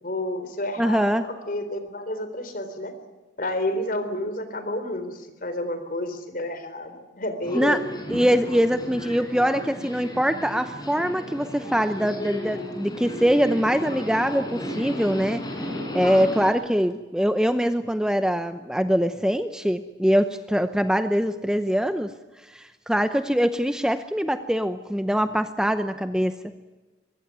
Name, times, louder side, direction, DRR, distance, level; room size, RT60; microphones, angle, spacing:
voice 1, 0.0-2.9 3.4-7.8, left 1 dB, 45° left, 10 dB, 3.9 m, -30 dB
voice 2, 0.8-1.2 7.5-7.8 8.1-15.4 15.9-22.1 22.5-26.4, equal, 5° right, 9 dB, 0.8 m, -23 dB
Subway metro underground, 7.4-16.5, left 1 dB, 20° left, 5.7 m, -34 dB
23.5 x 23.0 x 9.5 m, 1.2 s
head